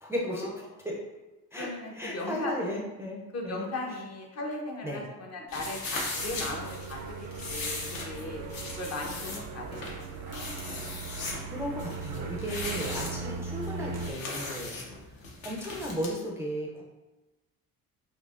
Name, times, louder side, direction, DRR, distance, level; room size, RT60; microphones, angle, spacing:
voice 1, 0.0-1.0 1.5-1.7 2.0-3.2 3.4-3.7 4.8-5.0 11.1-14.7 15.4-16.8, equal, 5° right, -3 dB, 0.4 m, -35 dB
voice 2, 1.5-2.5 3.3-8.4 8.8-10.5, left 2 dB, 45° left, 0 dB, 0.8 m, -38 dB
sound 1, 5.5-16.1, left 3 dB, 70° left, 0.9 m, -38 dB
sound 2, 6.1-14.1, right 4 dB, 90° right, 0.5 m, -39 dB
4.5 x 2.8 x 2.4 m, 1.1 s
cardioid pair, 100°, 37 cm